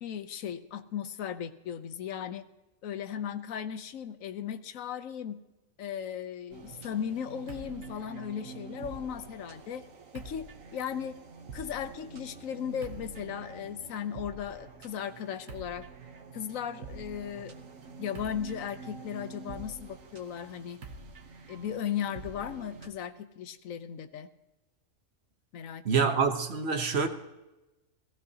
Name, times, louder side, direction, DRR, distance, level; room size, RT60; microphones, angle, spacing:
voice 1, 0.0-2.4 2.8-5.4 5.8-9.8 10.1-10.5 10.7-11.2 11.5-15.8 16.3-17.5 18.0-20.8 21.5-24.3 25.5-26.2, left 8 dB, 85° left, 1.2 m, -36 dB
sound 1, 6.5-22.9, right 3 dB, 85° right, 1.4 m, -46 dB
voice 2, 25.8-27.1, right 5 dB, 55° right, 1.2 m, -26 dB
17.0 x 15.5 x 2.8 m
omnidirectional pair, 1.3 m